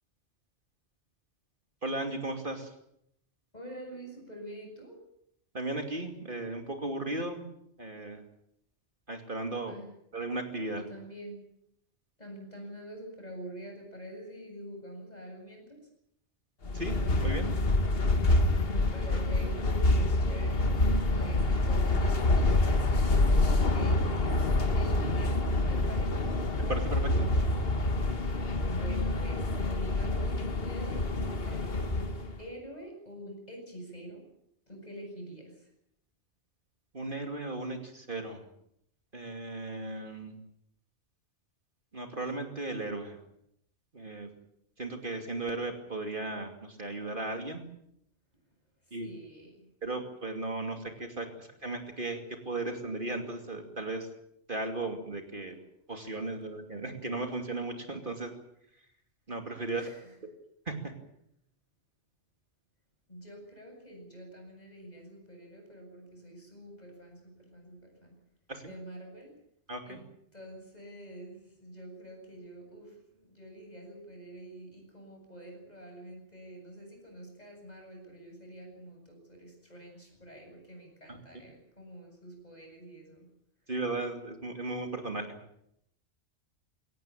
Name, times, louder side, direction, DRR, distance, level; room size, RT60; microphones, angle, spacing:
voice 1, 1.8-2.7 5.5-7.4 7.8-8.2 9.1-9.7 10.1-10.8 16.7-16.9 17.2-17.5 26.7-27.3 36.9-38.5 39.1-40.4 41.9-43.2 43.9-44.3 44.8-47.7 48.9-49.1 49.8-54.1 54.5-55.6 55.9-58.3 59.3-59.9 60.7-60.9 68.5-68.7 69.7-70.0 83.7-85.3, right 2 dB, 45° right, 4 dB, 2.8 m, -36 dB
voice 2, 3.5-5.0 9.7-9.9 10.7-11.4 12.2-15.9 18.7-26.3 28.6-34.3 34.7-35.7 48.8-49.7 59.7-60.1 63.1-68.2 68.6-69.3 69.8-70.0 70.3-83.3, right 1 dB, 35° left, 2 dB, 8.3 m, -46 dB
sound 1, 16.6-32.4, left 2 dB, 55° left, 1.7 m, -27 dB
23.5 x 18.0 x 8.9 m, 0.76 s
omnidirectional pair, 1.2 m